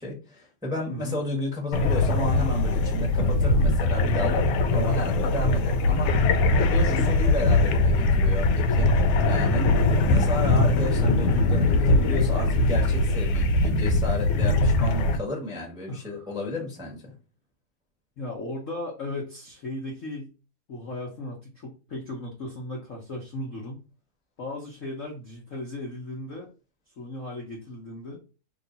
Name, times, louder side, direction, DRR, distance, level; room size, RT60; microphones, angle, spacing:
voice 1, 0.0-6.1 6.6-8.9 9.2-9.7 10.0-17.1, left 1 dB, ahead, -3 dB, 1.1 m, -32 dB
voice 2, 0.9-1.2 6.9-7.1 9.6-9.8 15.9-16.3 18.2-20.3 20.7-23.8 24.4-26.5 27.0-28.2, left 1 dB, 50° left, -2 dB, 1.0 m, -36 dB
sound 1, 1.7-15.2, left 2 dB, 85° left, 1.5 m, -21 dB
3.3 x 3.0 x 3.9 m, 0.32 s
omnidirectional pair, 2.3 m